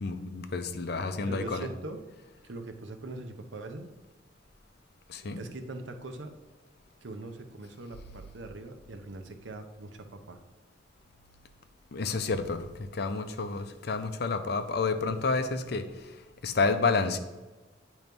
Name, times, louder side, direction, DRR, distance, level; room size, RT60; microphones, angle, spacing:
voice 1, 0.0-1.7 5.1-5.4 11.9-12.7 12.9-15.9 16.4-17.2, left 4 dB, 55° left, 9 dB, 0.5 m, -29 dB
voice 2, 1.2-2.0 2.4-3.9 5.4-6.3 7.0-10.4, right 2 dB, 85° right, 7 dB, 0.7 m, -41 dB
9.1 x 3.1 x 5.2 m, 1.2 s
head